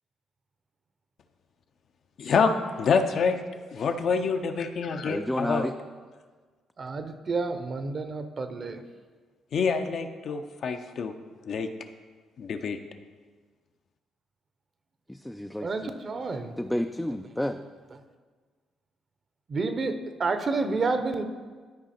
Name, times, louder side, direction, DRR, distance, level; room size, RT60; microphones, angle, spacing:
voice 1, 2.2-3.4 3.7-5.7 9.5-11.1 11.5-11.7 12.4-12.8, left 5 dB, 60° left, 6 dB, 0.6 m, -26 dB
voice 2, 5.0-5.8 15.1-15.9 16.6-17.6, left 1 dB, 5° left, 6 dB, 0.3 m, -30 dB
voice 3, 6.8-8.8 15.6-16.6 19.5-21.2, right 3 dB, 40° right, 8 dB, 0.8 m, -29 dB
12.0 x 4.9 x 4.3 m, 1.5 s
cardioid pair, 90°, 0 cm